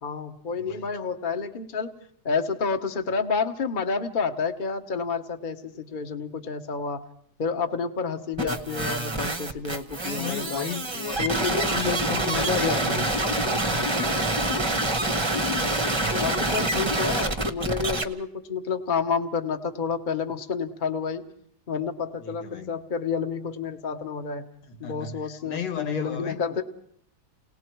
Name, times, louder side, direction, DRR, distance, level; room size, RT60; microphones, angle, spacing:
voice 1, 0.0-1.9 2.2-7.0 7.4-10.7 11.2-13.1 16.1-21.2 21.7-24.5 24.8-26.6, left 5 dB, 30° left, 1.1 m, -29 dB
voice 2, 0.6-0.9 9.9-13.9 15.3-16.8 22.2-22.8 24.7-26.4, left 6 dB, 75° left, 2.0 m, -36 dB
sound 1, 8.4-18.0, right 1 dB, 20° right, 0.9 m, -26 dB
30.0 x 19.0 x 4.6 m
omnidirectional pair, 2.0 m